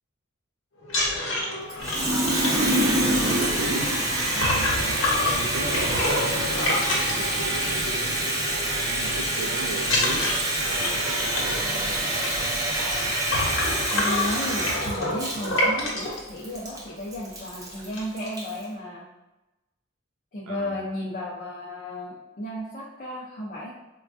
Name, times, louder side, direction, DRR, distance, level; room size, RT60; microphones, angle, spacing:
sound 1, 0.8-8.0 8.3-8.5 8.8-9.4 9.8-16.2 16.9-17.0 17.3-17.5 17.7-18.3, left 1 dB, 70° left, 0.9 m, -28 dB
Water tap faucet, 1.7-18.6, right 1 dB, 15° right, 0.5 m, -26 dB
sound 2, 1.8-13.6, equal, 50° right, 0.9 m, -36 dB
voice 1, 2.7-4.0 4.3-8.4 8.8-12.1 20.5-20.8, right 2 dB, 90° right, 0 dB, 0.3 m, -37 dB
voice 2, 13.9-19.0 20.3-23.7, left 1 dB, 40° left, -5 dB, 0.5 m, -33 dB
4.3 x 2.2 x 2.5 m, 1.0 s
head